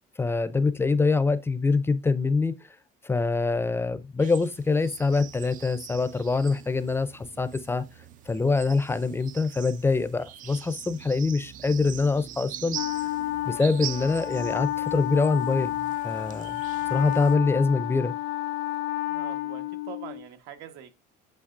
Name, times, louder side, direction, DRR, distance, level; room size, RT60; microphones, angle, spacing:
voice 1, 0.2-2.5 3.0-7.8 8.3-12.8 13.5-15.7 16.0-16.6 16.9-18.1, left 4 dB, 15° left, 0.5 m, -24 dB
sound 1, 4.2-17.4, right 11 dB, 50° right, 0.5 m, -43 dB
Wind instrument woodwind instrument, 12.7-20.3, left 15 dB, 85° left, 0.4 m, -31 dB
voice 2, 19.1-21.0, right 10 dB, 80° right, 1.5 m, -43 dB
8.6 x 5.8 x 2.6 m
cardioid pair, 145°, 18 cm